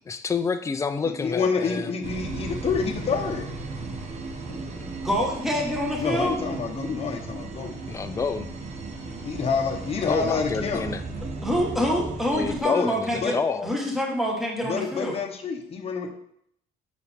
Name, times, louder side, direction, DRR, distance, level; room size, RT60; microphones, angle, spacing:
voice 1, 0.1-1.9 7.9-8.5 10.0-11.0 12.3-13.7, left 5 dB, 20° left, 8 dB, 0.4 m, -28 dB
voice 2, 1.1-3.5 4.5-4.9 6.0-7.8 9.0-10.8 12.7-13.4 14.6-16.1, left 5 dB, 35° left, 2 dB, 0.9 m, -28 dB
sound 1, 2.0-12.6, right 3 dB, 40° right, 1.1 m, -35 dB
voice 3, 5.0-6.3 11.4-13.4 13.6-15.2, equal, ahead, -2 dB, 1.6 m, -26 dB
6.9 x 4.6 x 3.5 m, 0.70 s
cardioid pair, 110°, 17 cm